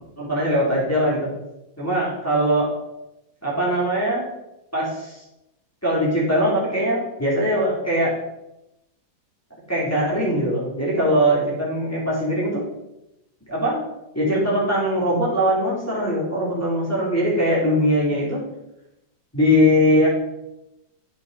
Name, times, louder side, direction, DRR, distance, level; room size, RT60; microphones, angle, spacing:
voice 1, 0.2-1.3 1.8-2.7 3.4-4.2 4.7-5.2 5.8-8.1 9.7-12.6 13.5-13.8 14.1-18.4 19.3-20.1, equal, 10° left, -7 dB, 2.8 m, -21 dB
9.1 x 8.1 x 3.9 m, 0.91 s
omnidirectional pair, 2.1 m